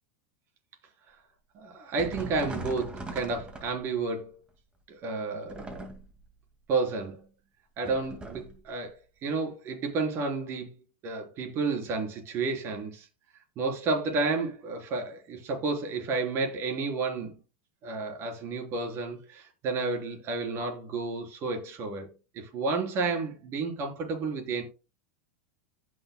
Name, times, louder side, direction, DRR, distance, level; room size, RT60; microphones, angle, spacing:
voice 1, 1.5-4.4 4.9-5.6 6.7-7.2 7.8-10.7 11.0-13.1 13.6-17.3 17.8-22.1 22.4-24.6, right 3 dB, 40° right, 3.9 m, -31 dB
sound 1, 2.0-4.1 5.5-6.3 7.8-8.6, right 2 dB, 15° right, 2.0 m, -40 dB
15.5 x 6.3 x 2.2 m
supercardioid pair, 125°, 7 cm